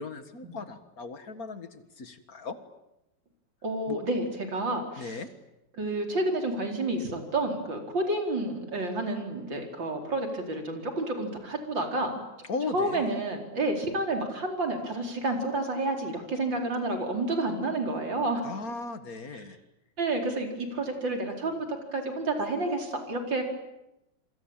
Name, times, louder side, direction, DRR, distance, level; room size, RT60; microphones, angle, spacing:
voice 1, 0.0-2.6 3.9-4.0 5.0-5.3 12.5-13.0 18.4-19.6, left 4 dB, 50° left, 10 dB, 2.1 m, -37 dB
voice 2, 3.6-5.2 5.8-12.1 12.7-18.5 20.0-23.5, right 2 dB, 85° right, 3 dB, 5.1 m, -30 dB
27.5 x 24.5 x 8.9 m, 0.90 s
omnidirectional pair, 2.0 m